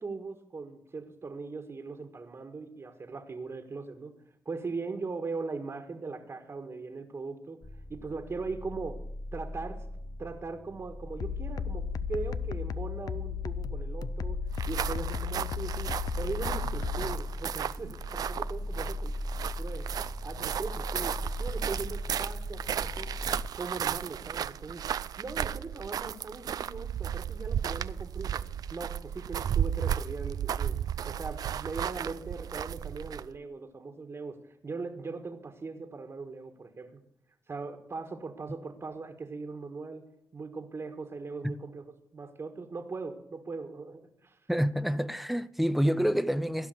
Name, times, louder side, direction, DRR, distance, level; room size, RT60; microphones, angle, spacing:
voice 1, 0.0-4.1 4.4-7.6 7.9-9.0 9.3-9.8 10.2-14.4 14.7-19.1 19.6-19.9 20.2-23.1 23.5-28.4 28.7-30.8 31.0-34.4 34.6-37.0 37.5-40.0 40.3-41.8 42.1-44.4, right 4 dB, 40° right, 1.6 m, -39 dB
sound 1, 7.6-23.5, left 1 dB, 25° left, 1.1 m, -38 dB
sound 2, 11.2-17.2, left 10 dB, 70° left, 0.5 m, -36 dB
sound 3, 14.5-33.4, right 9 dB, 65° right, 0.4 m, -34 dB
voice 2, 44.5-46.7, equal, ahead, 0.7 m, -27 dB
16.5 x 5.7 x 9.6 m
cardioid pair, 65°, 7 cm